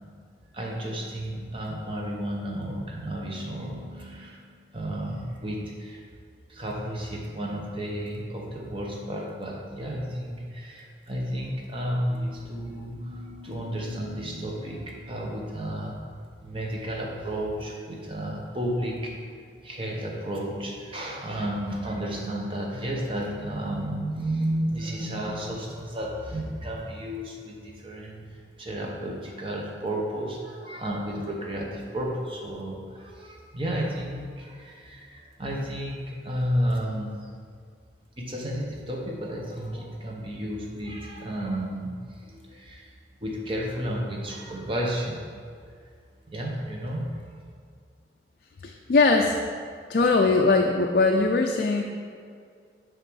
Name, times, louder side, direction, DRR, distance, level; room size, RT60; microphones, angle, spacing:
voice 1, 0.5-6.0 6.5-19.3 19.6-37.3 38.2-42.9 43.2-45.2 46.3-47.3, equal, 30° right, -2 dB, 1.0 m, -32 dB
voice 2, 48.6-49.4 49.9-51.8, left 3 dB, 55° left, 2 dB, 0.4 m, -21 dB
6.6 x 3.6 x 6.2 m, 2.2 s
head